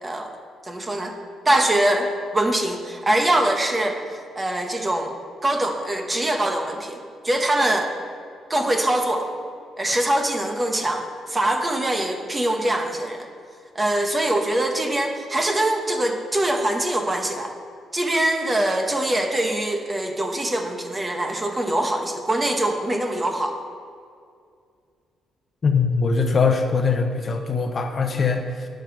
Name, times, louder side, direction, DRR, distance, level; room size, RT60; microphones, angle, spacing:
voice 1, 0.6-1.2 1.4-4.0 4.3-5.1 5.4-7.9 8.5-9.3 9.8-13.3 13.7-17.5 17.9-23.6, right 1 dB, 20° right, 3 dB, 1.3 m, -23 dB
voice 2, 25.6-28.7, left 4 dB, 40° left, 5 dB, 1.0 m, -22 dB
9.1 x 7.2 x 6.7 m, 2.3 s
cardioid pair, 90°, 0 cm